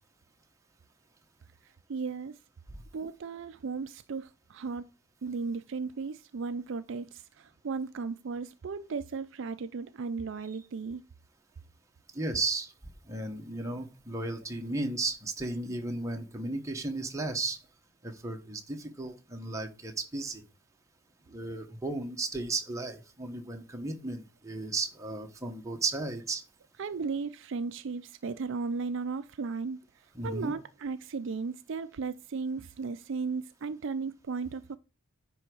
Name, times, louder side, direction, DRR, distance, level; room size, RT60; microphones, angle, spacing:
voice 1, 1.6-2.4 2.9-4.9 5.2-11.0 26.8-34.8, right 4 dB, 55° right, 0.4 m, -36 dB
voice 2, 12.1-12.7 13.1-17.6 18.0-20.4 21.3-26.4 30.1-30.5, right 2 dB, 15° right, 1.1 m, -34 dB
9.9 x 3.4 x 6.2 m
head